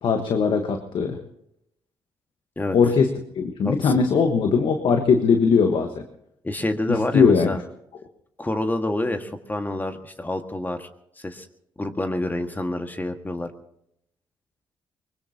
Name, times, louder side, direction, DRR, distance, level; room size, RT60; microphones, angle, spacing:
voice 1, 0.0-1.2 2.7-3.1 3.4-5.9 6.9-7.5, left 5 dB, 65° left, 5 dB, 1.4 m, -19 dB
voice 2, 3.6-4.0 6.4-7.6 8.4-10.9 11.2-11.5 11.8-13.5, left 1 dB, 20° left, 6 dB, 1.7 m, -27 dB
23.5 x 21.0 x 2.9 m, 0.78 s
supercardioid pair, 55°, 9 cm